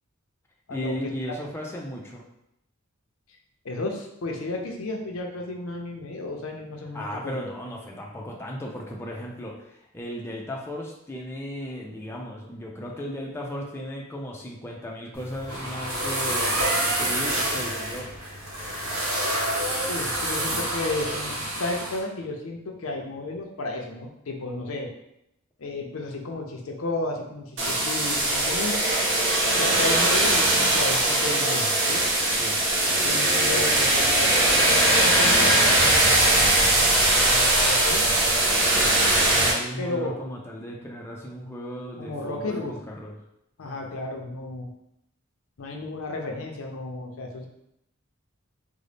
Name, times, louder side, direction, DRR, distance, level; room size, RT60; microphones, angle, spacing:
voice 1, 0.7-2.2 6.9-18.1 32.3-32.6 39.2-43.1, equal, 10° left, -2 dB, 0.4 m, -36 dB
voice 2, 3.6-7.5 19.9-24.9 25.6-28.7 29.6-32.0 33.0-38.0 39.8-40.2 42.0-42.7 43.6-44.7 45.6-47.5, left 2 dB, 70° left, 2 dB, 0.6 m, -33 dB
sound 1, 15.1-22.0, right 1 dB, 80° right, 1.0 m, -28 dB
sound 2, 27.6-39.5, right 1 dB, 60° right, 0.8 m, -20 dB
3.8 x 2.1 x 3.3 m, 0.81 s
head